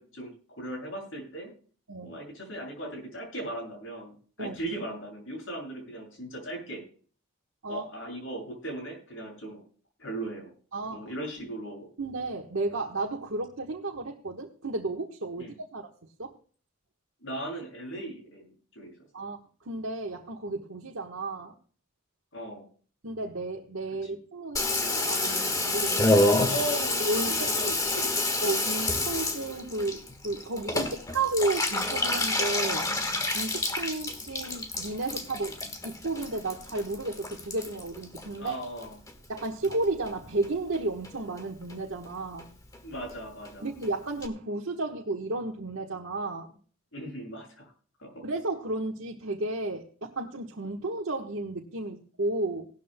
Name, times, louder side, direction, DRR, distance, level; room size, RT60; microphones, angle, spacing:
voice 1, 0.0-1.5 2.0-6.8 7.7-9.6 10.0-10.5 10.9-11.9 15.4-15.5 17.2-18.9 22.3-22.6 26.5-28.3 38.4-39.0 42.8-43.7 46.9-47.7 48.0-48.1, right 1 dB, 70° left, 1 dB, 7.4 m, -38 dB
voice 2, 10.7-11.0 11.4-11.5 12.0-15.9 16.2-16.3 19.1-21.5 23.0-26.4 27.0-27.7 28.4-32.9 33.3-35.5 35.8-38.5 39.3-42.5 43.6-46.6 48.2-52.7, right 2 dB, 80° right, 0 dB, 1.3 m, -33 dB
Water tap faucet / Bathtub (filling or washing), 24.5-39.1 39.4-40.1 40.4-40.5 40.7-40.8 41.0-41.4 41.7-41.8 42.0-42.1 42.4-42.5 42.7-42.8 43.1-43.2 43.4-43.5 43.8-43.9 44.2-44.3, left 2 dB, 15° left, 1.4 m, -29 dB
18.0 x 12.5 x 2.2 m, 0.42 s
head